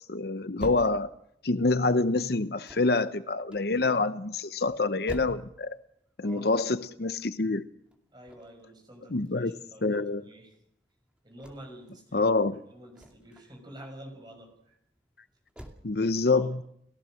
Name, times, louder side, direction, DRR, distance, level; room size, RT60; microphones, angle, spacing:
voice 1, 0.1-1.1 1.4-5.7 6.2-7.7 9.1-9.5 9.8-10.2 12.1-12.6 15.8-16.6, left 3 dB, 55° left, 0.8 m, -26 dB
sound 1, 0.6-15.7, equal, 5° right, 2.5 m, -48 dB
voice 2, 6.2-6.6 8.1-10.6 11.2-12.3 12.7-14.8 16.3-16.5, right 1 dB, 25° right, 6.0 m, -48 dB
30.0 x 15.5 x 6.5 m
head